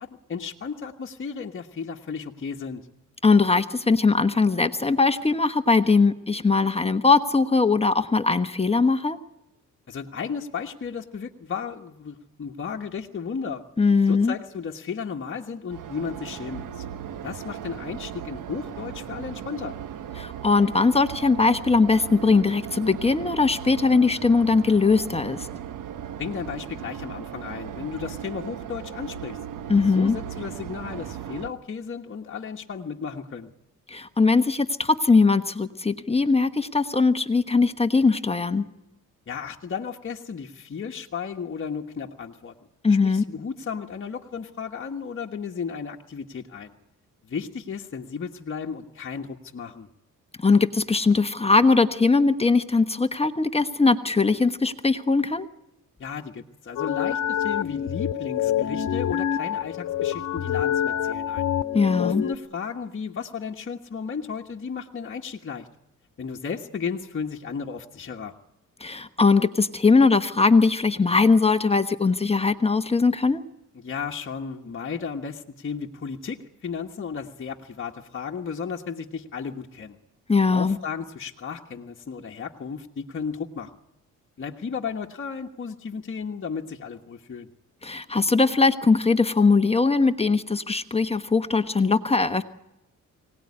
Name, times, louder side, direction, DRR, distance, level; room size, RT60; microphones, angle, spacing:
voice 1, 0.0-2.9 9.9-13.6 14.1-16.8 17.2-19.8 26.2-29.4 29.8-33.5 39.3-42.5 43.0-46.7 47.2-49.9 56.0-61.5 62.0-65.7 66.2-68.3 73.7-80.0 80.5-83.7 84.4-87.5, left 6 dB, 40° left, 1 dB, 1.5 m, -34 dB
voice 2, 3.2-9.2 13.8-14.3 20.2-25.5 29.7-30.2 33.9-38.6 42.8-43.2 50.4-55.5 61.7-62.2 68.8-73.4 80.3-80.8 87.8-92.4, left 4 dB, 20° left, 10 dB, 1.2 m, -20 dB
sound 1, 15.7-31.5, right 9 dB, 80° right, 1.3 m, -37 dB
sound 2, 56.8-62.4, left 10 dB, 70° left, 1.2 m, -26 dB
24.5 x 18.5 x 9.8 m, 0.90 s
cardioid pair, 105°, 31 cm